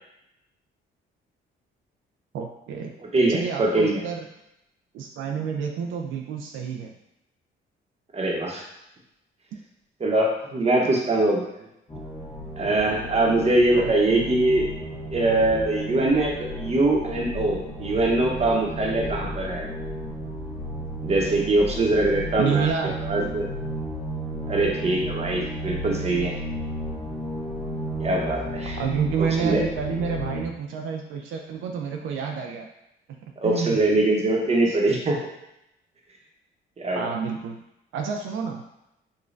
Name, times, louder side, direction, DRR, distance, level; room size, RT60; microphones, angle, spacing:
voice 1, 2.3-2.9 3.3-4.2 4.9-6.9 13.8-14.2 22.4-23.0 28.8-32.7 33.4-33.8 34.7-34.8 37.0-37.6 37.9-38.6, right 6 dB, 80° right, 2 dB, 0.4 m, -29 dB
voice 2, 3.1-4.0 8.1-8.6 10.0-11.5 12.6-14.7 15.1-19.7 21.0-22.7 23.0-23.5 24.5-26.4 28.0-28.8 29.2-29.7 33.4-35.2 36.8-37.0, right 2 dB, 30° right, -1 dB, 0.8 m, -22 dB
sound 1, 11.9-30.4, right 1 dB, 30° left, 1.1 m, -33 dB
5.1 x 2.2 x 2.5 m, 0.85 s
cardioid pair, 90°, 20 cm